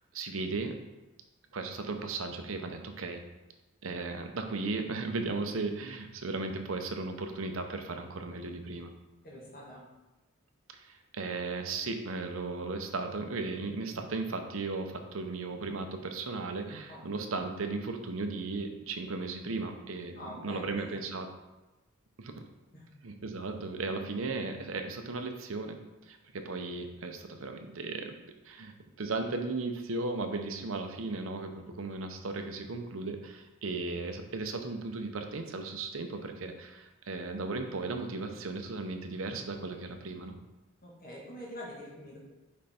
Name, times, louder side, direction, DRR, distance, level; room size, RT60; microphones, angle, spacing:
voice 1, 0.1-0.8 1.5-3.2 3.8-8.9 10.7-21.3 22.2-22.4 23.0-25.8 26.1-28.1 28.4-40.4, right 3 dB, 75° right, 5 dB, 0.7 m, -36 dB
voice 2, 9.2-9.9 16.9-17.0 20.2-21.0 22.7-22.9 40.8-42.2, equal, 45° left, -4 dB, 1.6 m, -45 dB
5.4 x 5.2 x 4.3 m, 1.1 s
head